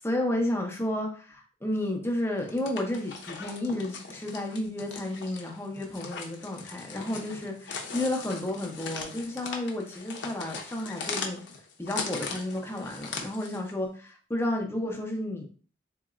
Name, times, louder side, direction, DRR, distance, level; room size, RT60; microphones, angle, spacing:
voice 1, 0.0-11.4 11.8-15.5, left 1 dB, 10° left, 2 dB, 0.5 m, -32 dB
sound 1, 2.4-13.7, left 4 dB, 60° left, 0.6 m, -39 dB
3.9 x 2.8 x 2.4 m, 0.40 s
head